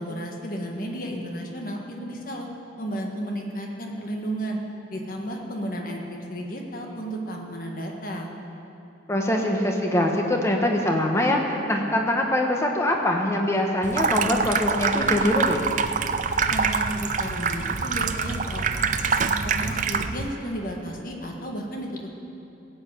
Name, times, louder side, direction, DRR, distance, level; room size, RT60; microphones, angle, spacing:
voice 1, 0.0-2.5 2.8-4.6 4.9-8.3 16.5-22.1, equal, 45° left, 0 dB, 1.7 m, -33 dB
voice 2, 9.1-15.6, left 1 dB, 15° left, 1 dB, 1.2 m, -23 dB
Water tap faucet / Sink (filling or washing), 13.8-20.3, right 5 dB, 40° right, 0.5 m, -25 dB
16.5 x 8.0 x 8.4 m, 2.8 s
head